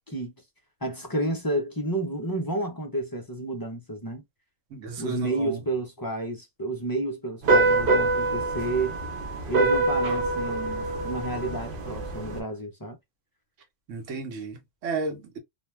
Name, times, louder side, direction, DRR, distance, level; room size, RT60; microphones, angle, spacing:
voice 1, 0.8-4.2 5.0-9.0 9.5-13.0, right 2 dB, 30° left, 0.4 m, -30 dB
voice 2, 4.7-5.6 13.9-15.4, right 4 dB, 85° right, 1.2 m, -33 dB
sound 1, 7.4-12.4, right 2 dB, 55° right, 0.8 m, -25 dB
2.5 x 2.2 x 3.0 m
omnidirectional pair, 1.3 m